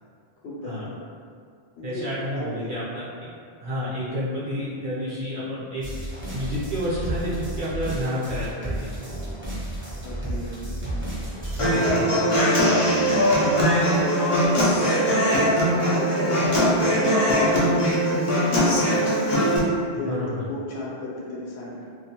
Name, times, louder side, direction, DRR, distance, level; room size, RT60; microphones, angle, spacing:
voice 1, 0.4-0.9 1.8-2.7 10.0-21.9, left 1 dB, 75° left, -6 dB, 0.9 m, -34 dB
voice 2, 1.8-3.3 3.6-5.9 6.3-9.7 11.5-12.1 16.4-16.9 19.9-20.4, equal, 55° right, -10 dB, 0.7 m, -30 dB
sound 1, 5.8-11.9, right 1 dB, 15° right, 0.5 m, -32 dB
Human voice / Acoustic guitar, 11.6-19.6, equal, 45° left, 0.4 m, -21 dB
2.3 x 2.1 x 2.8 m, 2.2 s
omnidirectional pair, 1.1 m